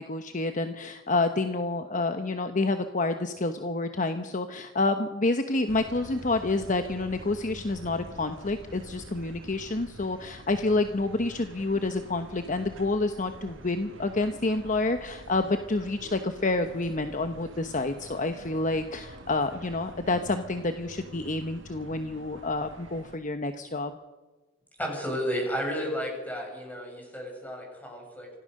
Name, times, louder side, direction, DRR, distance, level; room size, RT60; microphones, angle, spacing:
voice 1, 0.0-24.0, left 2 dB, 45° left, 7 dB, 1.0 m, -28 dB
sound 1, 5.7-23.2, right 1 dB, 85° right, 2.0 m, -47 dB
voice 2, 24.8-28.3, equal, 10° left, 0 dB, 7.4 m, -32 dB
25.5 x 16.0 x 6.6 m, 1.3 s
head